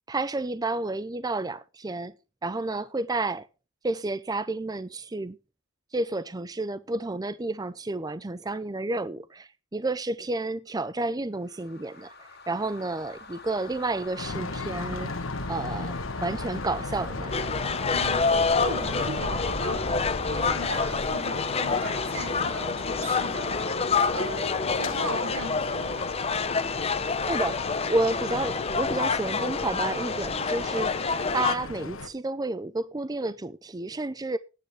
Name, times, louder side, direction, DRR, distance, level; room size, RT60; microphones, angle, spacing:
voice 1, 0.1-2.1 2.4-3.5 3.8-5.4 5.9-12.1 12.5-15.1 15.5-15.9 16.2-17.3 27.3-27.6 27.9-34.4, right 2 dB, 20° right, 0.5 m, -30 dB
sound 1, 11.5-21.2, left 1 dB, 50° left, 2.9 m, -40 dB
sound 2, 14.2-32.1, left 3 dB, 80° left, 1.4 m, -37 dB
sound 3, 17.3-31.5, left 4 dB, 30° left, 0.8 m, -28 dB
voice 2, 17.9-20.0 20.3-26.0, right 1 dB, 85° right, 5.4 m, -37 dB
18.0 x 9.5 x 3.2 m
head